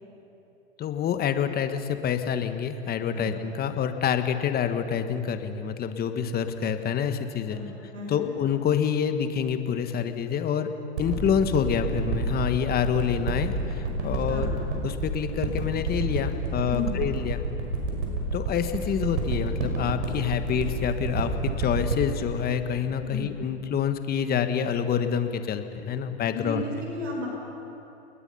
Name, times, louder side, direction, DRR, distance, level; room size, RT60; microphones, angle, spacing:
voice 1, 0.8-7.6 8.1-10.7 11.0-14.5 14.8-17.4 18.3-26.6, left 8 dB, 25° left, 8 dB, 1.5 m, -27 dB
voice 2, 7.9-8.3 14.0-14.5 16.7-17.0 23.0-23.3 26.3-27.3, left 3 dB, 85° right, -1 dB, 6.0 m, -34 dB
sound 1, 11.0-23.7 24.3-24.4, right 4 dB, 70° right, 5.8 m, -29 dB
29.5 x 20.0 x 5.7 m, 2.9 s
hypercardioid pair, 115°, 36 cm